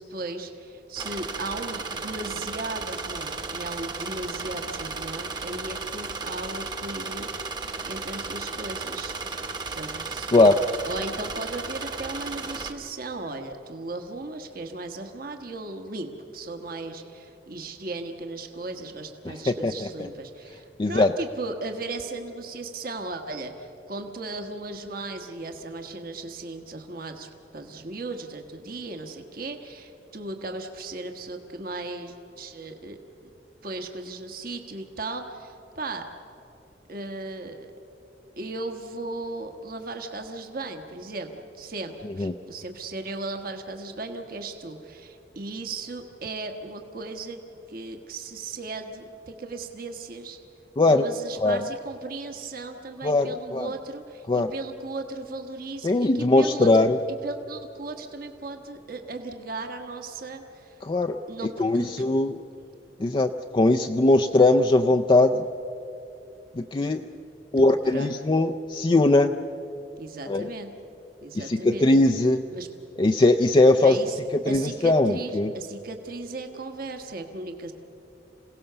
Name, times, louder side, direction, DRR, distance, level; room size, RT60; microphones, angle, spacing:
voice 1, 0.0-7.3 7.9-9.1 9.7-10.5 10.8-33.0 33.6-36.0 36.9-37.7 38.4-47.4 47.7-50.4 50.9-60.8 61.3-61.9 67.5-68.1 70.0-70.7 71.2-71.9 72.5-72.7 73.8-74.2 74.4-77.7, right 2 dB, 55° right, 5 dB, 1.3 m, -36 dB
sound 1, 1.0-12.7, right 4 dB, 25° right, 1.1 m, -34 dB
voice 2, 19.3-19.9 20.8-21.1 42.2-42.3 50.8-51.0 51.4-51.6 53.0-53.7 54.3-54.5 55.8-57.0 60.8-61.2 61.6-62.4 63.0-65.4 66.6-67.0 67.5-69.3 70.3-70.5 71.3-72.4 73.0-74.0 74.5-75.5, left 2 dB, 30° left, 6 dB, 0.4 m, -20 dB
27.0 x 17.5 x 6.8 m, 2.9 s
head